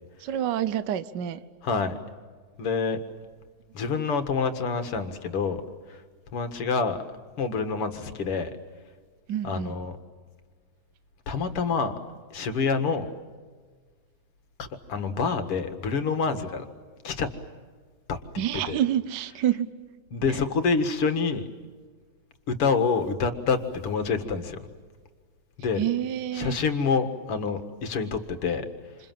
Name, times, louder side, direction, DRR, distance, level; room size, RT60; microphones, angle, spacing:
voice 1, 0.2-1.4 9.3-9.8 18.4-19.7 20.3-20.4 25.8-26.6, right 10 dB, 90° right, 0.9 m, -27 dB
voice 2, 1.6-2.0 2.6-3.0 3.7-5.6 5.9-6.0 6.3-7.0 7.4-8.5 9.4-10.0 11.3-11.9 12.3-13.1 14.6-16.7 17.0-17.3 18.1-18.2 18.7-18.8 20.1-21.4 22.5-24.7 25.6-25.8 26.3-28.7, left 5 dB, 55° left, 2.4 m, -27 dB
28.0 x 27.0 x 7.7 m
omnidirectional pair, 3.3 m